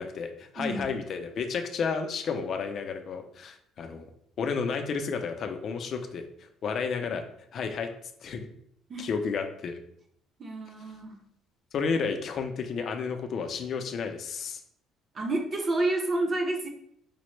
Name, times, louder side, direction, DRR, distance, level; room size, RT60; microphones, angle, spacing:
voice 1, 0.0-4.1 4.4-6.3 6.6-7.2 7.5-7.9 8.2-8.5 9.0-9.8 11.7-14.6, left 5 dB, 45° left, 5 dB, 0.4 m, -31 dB
voice 2, 0.6-0.9 8.9-9.1 10.4-11.2 15.1-16.7, right 2 dB, 30° right, 3 dB, 0.6 m, -29 dB
5.0 x 2.0 x 3.1 m, 0.70 s
cardioid pair, 155°, 0 cm